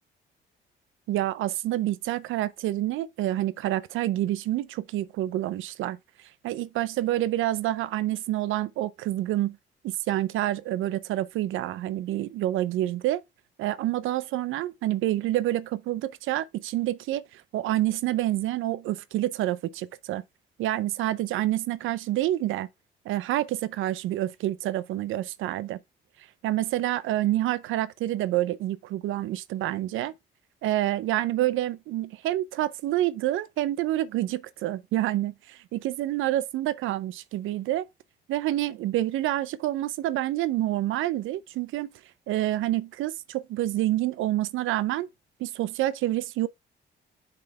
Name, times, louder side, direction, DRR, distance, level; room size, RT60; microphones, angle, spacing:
voice 1, 1.1-6.0 6.4-9.6 9.8-13.2 13.6-20.2 20.6-22.7 23.1-25.8 26.4-30.1 30.6-37.9 38.3-41.9 42.3-45.1 45.4-46.5, right 14 dB, 85° right, 0.5 m, -28 dB
7.6 x 3.8 x 4.2 m
cardioid pair, 90°, 20 cm